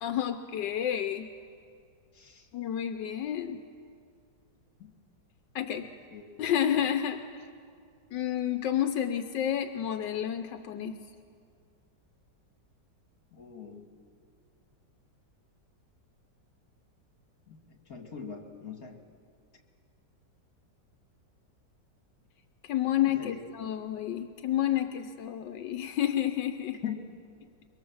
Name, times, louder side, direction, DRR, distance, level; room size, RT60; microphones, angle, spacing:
voice 1, 0.0-1.3 2.5-3.6 5.5-5.9 6.4-7.5 8.1-11.0 22.6-26.8, left 10 dB, 85° left, 7 dB, 1.5 m, -30 dB
voice 2, 2.1-2.5 4.8-4.9 5.8-5.9 6.1-6.2 13.3-13.9 17.5-19.0 23.1-23.4 26.8-27.1, left 8 dB, 55° left, 3 dB, 2.6 m, -41 dB
24.0 x 23.0 x 7.2 m, 2.3 s
omnidirectional pair, 1.9 m